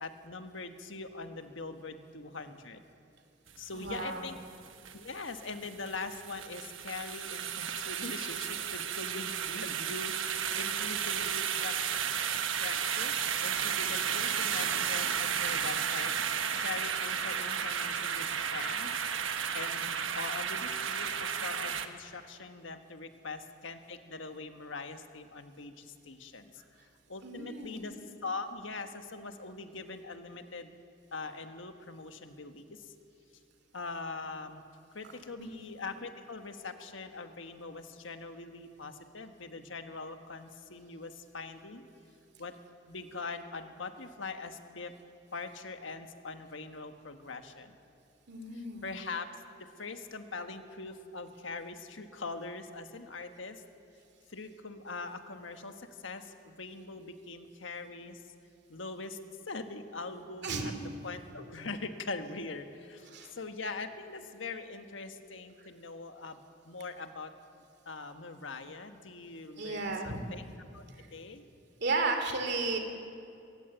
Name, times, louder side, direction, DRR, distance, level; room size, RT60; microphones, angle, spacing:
voice 1, 0.0-2.8 3.6-4.4 4.9-11.7 12.1-18.9 19.5-26.5 27.1-27.9 28.2-30.7 31.1-32.7 33.7-34.6 34.9-41.9 42.4-42.5 42.9-44.9 45.3-47.7 48.8-49.3 49.8-53.6 54.3-58.2 58.7-59.2 59.5-60.7 61.0-66.4 66.6-67.3 67.6-70.4 70.7-70.8 71.1-71.5, left 3 dB, 75° left, 7 dB, 1.4 m, -42 dB
sound 1, 3.5-21.9, right 8 dB, 90° right, 1.2 m, -33 dB
voice 2, 3.7-4.4 12.2-12.3 27.2-27.9 35.4-35.6 48.3-48.9 60.4-60.7 63.1-63.3 65.6-65.7 69.6-70.2 70.9-71.1 71.8-72.8, right 3 dB, 60° right, 5 dB, 2.6 m, -34 dB
21.5 x 18.0 x 8.0 m, 2.6 s
head